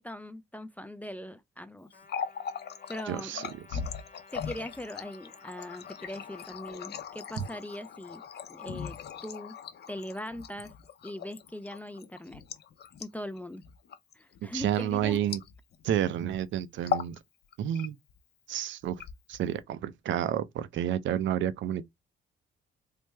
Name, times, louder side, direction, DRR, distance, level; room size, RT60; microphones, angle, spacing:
voice 1, 0.0-1.9 2.9-3.4 4.3-8.2 8.5-9.0 9.2-9.6 9.9-10.7 11.0-12.4 13.0-13.6 14.1-15.2, left 1 dB, 10° left, 0.3 m, -40 dB
Water tap faucet, 1.9-15.9 16.2-16.4 16.8-17.2 17.5-18.2 18.8-19.6, left 7 dB, 55° left, 0.6 m, -39 dB
Trumpet, 1.9-6.6, left 3 dB, 40° left, 1.0 m, -56 dB
voice 2, 3.1-3.8 14.5-15.4 15.8-17.2 17.6-18.0 18.5-19.0 19.3-21.8, right 10 dB, 70° right, 0.5 m, -30 dB
3.3 x 2.0 x 3.2 m
cardioid pair, 90°, 20 cm